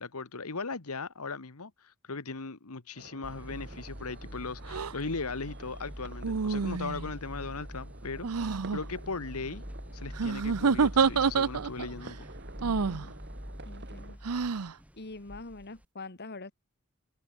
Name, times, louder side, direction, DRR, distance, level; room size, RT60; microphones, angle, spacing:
voice 1, 0.0-9.6 9.9-12.3, left 4 dB, 75° left, 1.5 m, -38 dB
sound 1, 2.9-14.2, right 2 dB, 50° right, 4.0 m, -51 dB
sound 2, 3.2-15.9, equal, 5° right, 4.4 m, -44 dB
sound 3, 4.7-4.9 6.2-7.1 8.2-8.8 10.2-11.9 12.6-13.1 14.2-14.7, right 5 dB, 85° right, 0.7 m, -27 dB
voice 2, 12.7-13.1 13.7-14.2 14.9-16.5, left 3 dB, 50° left, 1.8 m, -44 dB
head